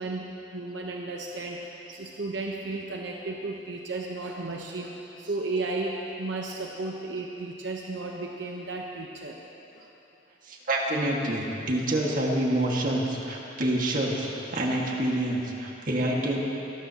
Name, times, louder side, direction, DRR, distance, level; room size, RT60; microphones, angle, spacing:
voice 1, 0.0-9.4 9.7-9.9, right 2 dB, 80° right, 0 dB, 0.9 m, -34 dB
voice 2, 10.4-16.4, right 1 dB, 50° right, -2 dB, 1.8 m, -27 dB
23.5 x 13.0 x 2.9 m, 3.0 s
head